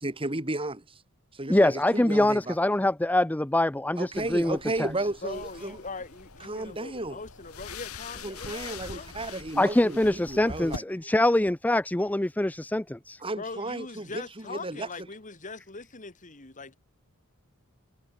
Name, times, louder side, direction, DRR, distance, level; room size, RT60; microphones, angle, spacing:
voice 1, 0.0-0.8 1.3-2.5 4.0-5.7 6.4-7.2 8.2-10.8 13.2-14.9, right 2 dB, 25° right, 3.0 m, -33 dB
voice 2, 1.5-4.9 9.6-13.2, left 1 dB, 5° left, 0.4 m, -24 dB
sound 1, 4.1-10.8, left 4 dB, 85° left, 4.9 m, -43 dB
voice 3, 5.2-9.1 13.4-16.8, left 3 dB, 35° left, 2.2 m, -41 dB
head